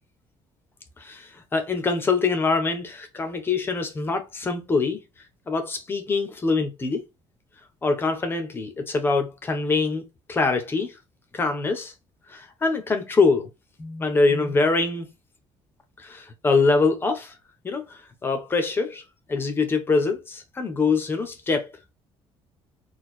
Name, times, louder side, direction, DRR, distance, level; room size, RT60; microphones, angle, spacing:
voice 1, 1.0-5.0 5.5-7.0 7.8-10.9 11.3-11.9 12.3-13.5 13.8-15.1 16.0-17.3 17.6-19.0 19.3-21.7, left 4 dB, 20° left, 0.9 m, -24 dB
4.4 x 2.4 x 4.3 m
cardioid pair, 170°, 11 cm